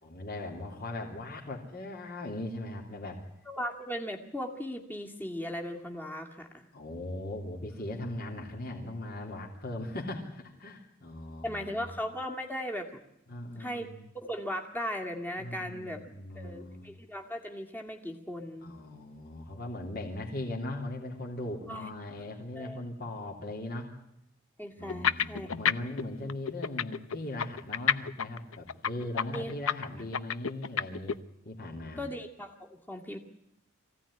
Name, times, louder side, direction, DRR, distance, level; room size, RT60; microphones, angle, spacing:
voice 1, 0.0-3.2 6.7-12.0 13.3-14.0 15.4-16.9 18.6-23.9 24.8-31.2 31.4-32.0, left 1 dB, 45° left, 0 dB, 3.1 m, -39 dB
voice 2, 3.5-6.7 11.4-13.0 13.6-16.0 16.3-18.7 21.7-21.9 22.5-22.8 24.6-25.5 29.3-29.5 32.0-33.2, equal, 10° left, 2 dB, 2.1 m, -37 dB
sound 1, 24.9-26.0 26.3-31.1, left 7 dB, 75° left, 0.8 m, -28 dB
23.5 x 16.5 x 9.9 m, 0.82 s
head